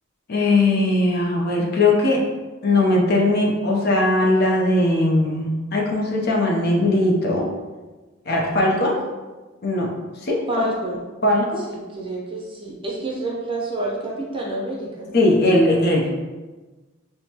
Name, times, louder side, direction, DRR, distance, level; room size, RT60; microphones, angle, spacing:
voice 1, 0.3-2.2 2.6-7.5 8.3-9.0 9.6-9.9 10.2-10.4 11.2-11.6 15.1-16.1, left 2 dB, 45° left, -1 dB, 0.6 m, -19 dB
voice 2, 10.5-11.0 11.6-15.2, right 2 dB, 25° right, -3 dB, 0.6 m, -29 dB
6.1 x 2.2 x 2.9 m, 1.2 s
head